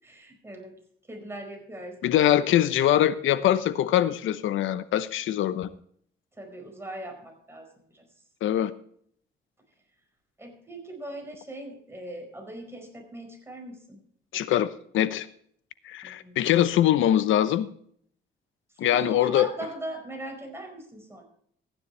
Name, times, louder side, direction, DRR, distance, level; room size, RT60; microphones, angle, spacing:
voice 1, 0.0-0.7 1.1-2.0 6.4-8.0 10.4-14.0 16.0-16.4 18.8-21.2, right 1 dB, 10° right, 2 dB, 4.8 m, -40 dB
voice 2, 2.0-5.7 8.4-8.7 14.3-15.3 15.8-17.7 18.8-19.5, left 11 dB, 80° left, 15 dB, 0.9 m, -23 dB
15.0 x 10.0 x 3.3 m, 0.62 s
cardioid pair, 90°, 20 cm